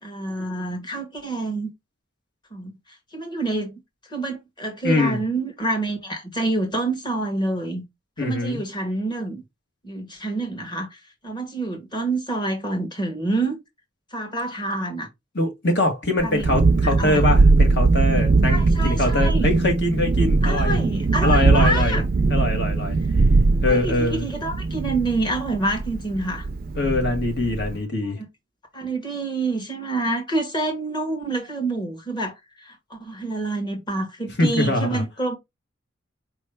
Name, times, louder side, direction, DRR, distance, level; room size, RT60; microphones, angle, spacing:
voice 1, 0.0-1.7 2.5-3.7 4.1-7.8 8.2-9.4 9.8-13.6 14.1-15.1 16.2-16.4 16.8-17.3 18.5-19.5 20.4-22.0 23.6-26.5 28.2-28.3 28.7-35.4, right 2 dB, 25° left, 1.5 m, -27 dB
voice 2, 4.8-5.2 8.2-8.6 15.3-20.8 21.2-22.0 22.3-23.0 23.6-24.3 26.7-28.2 34.4-35.0, left 1 dB, 55° left, 1.7 m, -23 dB
Thunderstorm, 16.2-27.8, right 3 dB, 45° right, 0.4 m, -20 dB
4.8 x 3.1 x 3.4 m
head